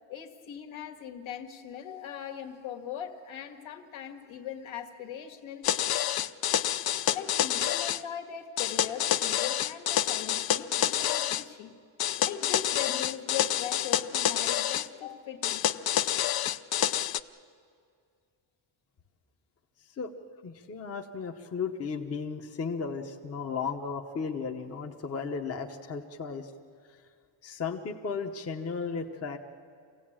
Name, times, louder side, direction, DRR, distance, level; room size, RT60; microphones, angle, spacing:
voice 1, 0.1-5.7 7.1-11.7 12.2-15.7, left 9 dB, 70° left, 4 dB, 2.0 m, -40 dB
sound 1, 5.6-8.0 8.6-11.4 12.0-14.9 15.4-17.2, left 11 dB, 50° left, 0.6 m, -28 dB
voice 2, 20.4-26.5 27.4-29.4, left 5 dB, 30° left, 3 dB, 1.0 m, -35 dB
26.0 x 16.5 x 8.8 m, 2.2 s
cardioid pair, 170°, 49 cm